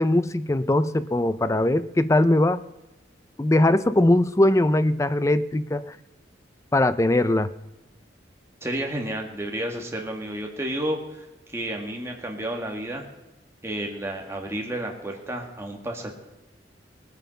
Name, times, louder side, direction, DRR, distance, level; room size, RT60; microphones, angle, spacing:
voice 1, 0.0-2.6 3.4-6.0 6.7-7.5, left 1 dB, 15° left, 14 dB, 0.4 m, -21 dB
voice 2, 8.6-11.2 11.5-13.1 13.6-16.1, right 1 dB, 15° right, 1 dB, 2.1 m, -31 dB
19.5 x 9.1 x 5.5 m, 1.0 s
head